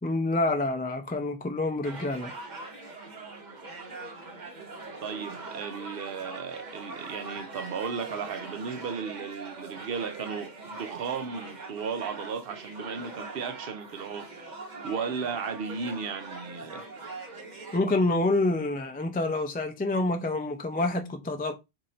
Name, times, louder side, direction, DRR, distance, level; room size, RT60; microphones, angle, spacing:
voice 1, 0.0-2.3 17.7-21.5, left 2 dB, 15° left, 0.3 m, -27 dB
sound 1, 1.8-17.8, right 3 dB, 45° right, 0.9 m, -42 dB
voice 2, 5.0-14.3 14.8-16.9, right 6 dB, 65° right, 0.8 m, -35 dB
3.9 x 2.7 x 4.3 m
omnidirectional pair, 1.1 m